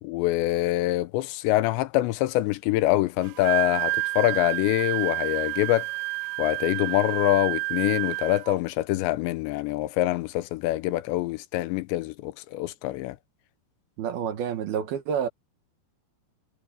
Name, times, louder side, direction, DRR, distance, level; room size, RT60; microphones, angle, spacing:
voice 1, 0.0-5.9 6.4-13.2, left 16 dB, 80° left, 2.9 m, -25 dB
Wind instrument woodwind instrument, 3.2-8.6, right 21 dB, 85° right, 3.0 m, -30 dB
voice 2, 14.0-15.3, right 8 dB, 65° right, 3.1 m, -28 dB
omnidirectional pair, 5.2 m